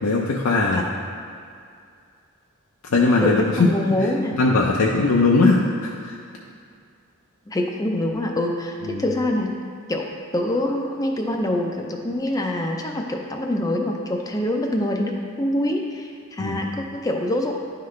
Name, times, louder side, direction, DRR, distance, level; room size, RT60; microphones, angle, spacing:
voice 1, 0.0-0.8 2.9-3.7 4.0-4.1 4.4-6.2 8.8-9.0 16.4-16.6, left 3 dB, 75° left, -2 dB, 0.5 m, -19 dB
voice 2, 3.2-4.4 7.5-9.5 9.9-10.1 10.3-17.5, left 1 dB, 15° left, 1 dB, 0.4 m, -25 dB
10.5 x 3.9 x 3.2 m, 2.3 s
head